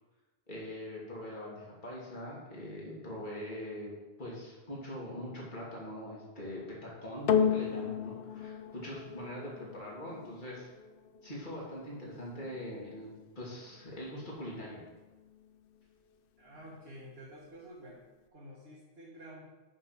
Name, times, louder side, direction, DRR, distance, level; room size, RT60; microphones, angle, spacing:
voice 1, 0.5-3.9 4.2-10.7 11.2-14.8, equal, 45° left, -5 dB, 2.9 m, -42 dB
sound 1, 7.3-15.8 16.6-16.7, left 7 dB, 60° left, 0.8 m, -36 dB
voice 2, 16.4-18.0 18.3-19.5, equal, 65° right, -6 dB, 2.0 m, -50 dB
8.9 x 5.6 x 5.9 m, 1.2 s
omnidirectional pair, 1.1 m